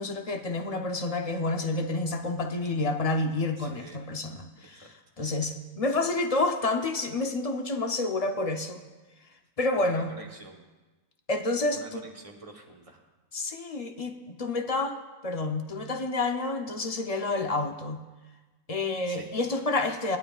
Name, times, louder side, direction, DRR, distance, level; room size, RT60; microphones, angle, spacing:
voice 1, 0.0-8.8 9.6-10.1 11.3-12.0 13.3-15.0 15.2-18.0 18.7-20.2, left 2 dB, 40° left, 5 dB, 0.6 m, -29 dB
voice 2, 3.6-4.0 4.6-4.9 5.2-5.4 9.8-10.7 11.7-13.0 19.1-19.3, right 2 dB, 25° right, 1 dB, 1.1 m, -47 dB
17.0 x 11.5 x 2.4 m, 1.2 s
omnidirectional pair, 1.4 m